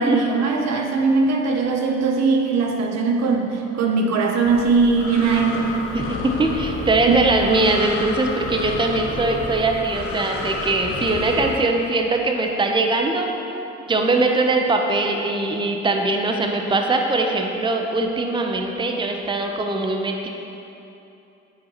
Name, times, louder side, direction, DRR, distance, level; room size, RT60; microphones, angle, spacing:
voice 1, 0.0-5.7 7.1-7.2, right 4 dB, 60° right, 2 dB, 0.8 m, -20 dB
Breathing, 4.5-11.6, left 3 dB, 50° left, 0.8 m, -30 dB
voice 2, 5.9-13.3 13.9-20.3, right 2 dB, 15° right, 3 dB, 0.7 m, -21 dB
10.5 x 4.7 x 2.9 m, 2.9 s
supercardioid pair, 60°, 30 cm